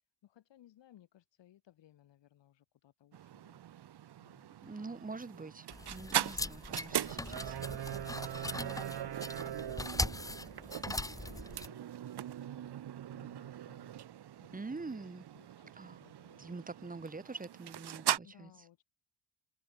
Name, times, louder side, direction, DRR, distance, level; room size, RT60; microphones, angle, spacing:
voice 1, 0.2-3.6 4.2-5.0 6.0-8.2 8.6-14.0 14.4-16.5 17.6-17.8 18.2-18.8, left 12 dB, 70° left, 6.9 m, -62 dB
sound 1, 3.1-18.2, right 11 dB, 60° right, 2.7 m, -40 dB
voice 2, 4.6-7.5 14.5-15.2 15.8-16.0 16.4-18.5, right 3 dB, 20° right, 2.8 m, -45 dB
sound 2, 5.7-11.7, left 2 dB, 5° left, 1.0 m, -40 dB
cardioid pair, 105°, 46 cm